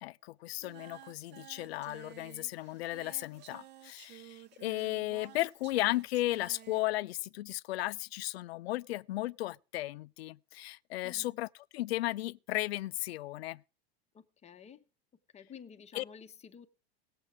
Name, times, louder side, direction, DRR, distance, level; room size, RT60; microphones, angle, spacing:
voice 1, 0.0-11.5 11.7-13.6 15.9-16.0, left 17 dB, 75° left, 0.5 m, -35 dB
Singing, 0.6-6.8, right 12 dB, 35° right, 0.8 m, -54 dB
voice 2, 11.0-11.4 14.1-14.8 15.3-16.7, left 7 dB, 20° left, 0.9 m, -51 dB
17.0 x 7.7 x 4.8 m
hypercardioid pair, 120°, 31 cm